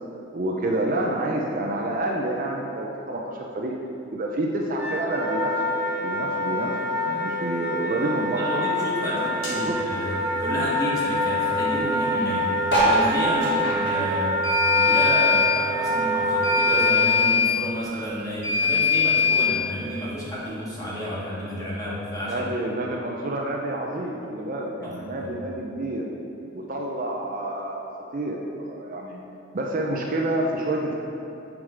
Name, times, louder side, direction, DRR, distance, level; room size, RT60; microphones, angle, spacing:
voice 1, 0.3-3.7 4.1-5.5 6.0-6.7 7.0-8.6 9.1-9.3 9.6-9.8 22.3-26.0 26.5-29.2 29.5-31.0, right 1 dB, 45° right, -1 dB, 0.6 m, -28 dB
Wind instrument woodwind instrument, 4.8-17.0, equal, 5° right, 1.2 m, -26 dB
voice 2, 8.4-12.5 12.7-14.3 14.7-22.4 24.8-24.9 25.2-25.3, equal, 20° left, -7 dB, 1.7 m, -30 dB
sound 1, 9.4-9.6 14.4-15.5 16.4-17.5 18.4-19.5, left 6 dB, 85° left, 1.5 m, -21 dB
sound 2, 12.6-15.4 15.7-17.3 17.8-17.9 18.0-18.1 18.3-18.7 19.5-19.6, right 1 dB, 55° left, 1.8 m, -26 dB
7.4 x 4.8 x 4.9 m, 2.7 s
head